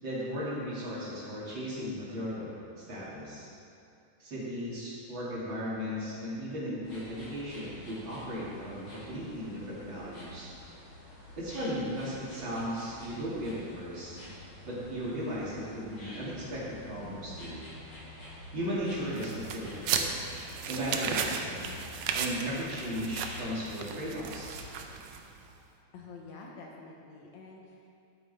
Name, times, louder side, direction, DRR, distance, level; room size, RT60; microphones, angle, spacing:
voice 1, 0.0-3.5 4.2-10.5 11.4-14.2 14.6-17.6 18.5-20.1 20.7-21.8 22.1-24.6, equal, 40° right, -8 dB, 3.0 m, -36 dB
sound 1, 6.8-24.8, left 1 dB, 55° left, 4.1 m, -48 dB
sound 2, 19.2-25.4, right 6 dB, 75° right, 1.7 m, -35 dB
voice 2, 25.9-27.9, left 3 dB, 70° left, 0 dB, 2.2 m, -48 dB
12.0 x 9.4 x 4.2 m, 2.5 s
omnidirectional pair, 3.4 m